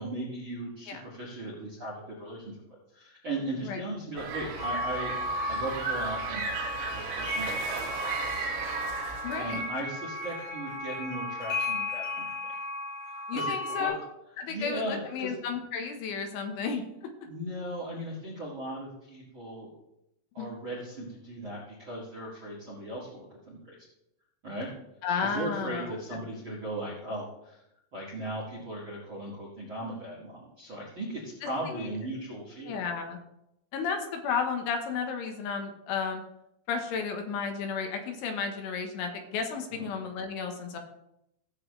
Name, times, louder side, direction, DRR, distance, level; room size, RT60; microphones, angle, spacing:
voice 1, 0.0-2.6 2.9-5.1 5.5-8.0 8.4-8.5 9.4-12.3 13.3-13.9 14.5-15.3 17.2-19.7 20.3-23.8 24.4-24.7 25.2-27.6 27.9-32.8 39.7-39.9, right 1 dB, 45° right, -5 dB, 1.7 m, -37 dB
sound 1, 4.2-9.7, right 4 dB, 80° right, 4.2 m, -35 dB
sound 2, 4.6-13.9, left 1 dB, 90° left, 7.8 m, -35 dB
voice 2, 9.2-9.6 13.3-16.8 20.4-20.5 25.0-26.2 31.7-31.9 32.7-33.2 33.7-36.2 36.7-40.8, left 6 dB, 75° left, 5 dB, 3.4 m, -33 dB
17.0 x 7.7 x 3.3 m, 0.83 s
omnidirectional pair, 5.9 m